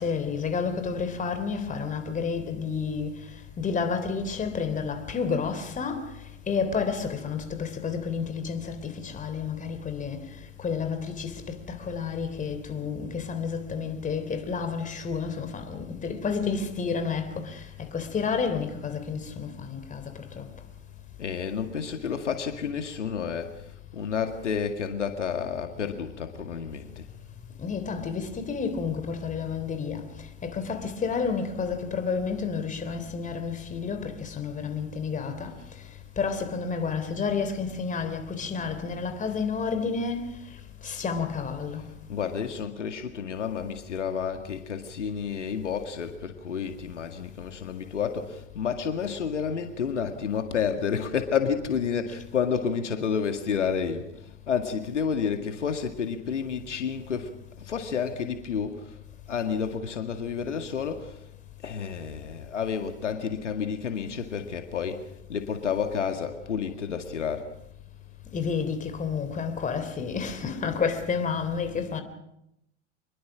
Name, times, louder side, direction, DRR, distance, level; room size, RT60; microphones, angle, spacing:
voice 1, 0.0-3.1 3.6-6.0 6.5-10.2 10.6-17.6 17.9-20.0 20.4-20.5 27.6-30.0 30.4-35.5 36.2-40.3 40.8-41.8 68.3-72.0, left 5 dB, 20° left, 3.4 m, -30 dB
voice 2, 21.2-23.6 23.9-27.1 42.1-57.3 57.6-59.0 59.3-61.2 61.6-67.5, left 7 dB, 75° left, 2.1 m, -30 dB
25.5 x 22.0 x 6.3 m
figure-of-eight pair, 90°, 36 cm